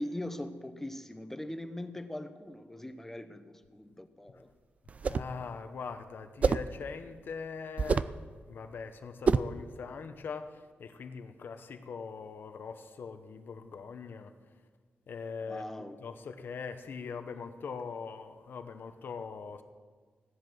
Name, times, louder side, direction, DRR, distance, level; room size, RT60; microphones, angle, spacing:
voice 1, 0.0-4.5 15.5-16.0, left 1 dB, 10° left, 10 dB, 0.7 m, -41 dB
sound 1, 4.9-5.4 6.4-6.8 7.8-8.2 9.3-9.6, right 5 dB, 35° right, 0.4 m, -27 dB
voice 2, 5.0-14.6 15.1-15.6 16.0-19.6, left 5 dB, 60° left, 8 dB, 1.0 m, -42 dB
15.5 x 10.5 x 6.2 m, 1.5 s
wide cardioid pair, 170°, 4 cm